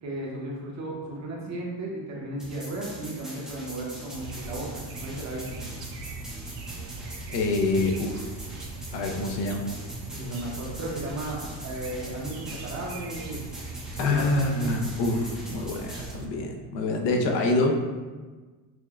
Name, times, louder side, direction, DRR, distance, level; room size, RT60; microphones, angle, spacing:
voice 1, 0.0-5.6 10.1-13.4 14.0-14.7, right 1 dB, 40° right, -3 dB, 0.8 m, -35 dB
sound 1, 2.4-16.1, right 1 dB, ahead, 0.5 m, -43 dB
sound 2, 4.1-16.3, right 3 dB, 85° right, 0.6 m, -40 dB
voice 2, 7.3-8.3 8.9-9.7 14.0-17.7, left 2 dB, 75° left, 2 dB, 0.6 m, -26 dB
5.9 x 2.1 x 2.3 m, 1.3 s
cardioid pair, 160°, 43 cm